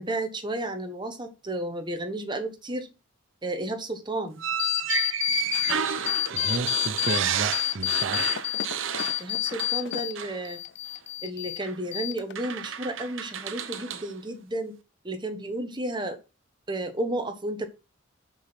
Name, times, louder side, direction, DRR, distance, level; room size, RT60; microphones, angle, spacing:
voice 1, 0.0-2.9 3.4-4.4 9.2-10.6 11.2-14.8 15.0-16.2 16.7-17.7, right 1 dB, 20° right, 1.3 m, -32 dB
sound 1, 4.4-9.9 10.1-10.4 11.6-11.8 12.3-14.1, right 8 dB, 65° right, 1.0 m, -31 dB
sound 2, 4.6-5.7 6.1-7.2 7.5-10.1 10.4-11.6 11.9-12.5, left 16 dB, 55° left, 0.4 m, -28 dB
voice 2, 6.3-8.4, right 2 dB, 45° right, 0.7 m, -33 dB
6.1 x 6.0 x 5.9 m
head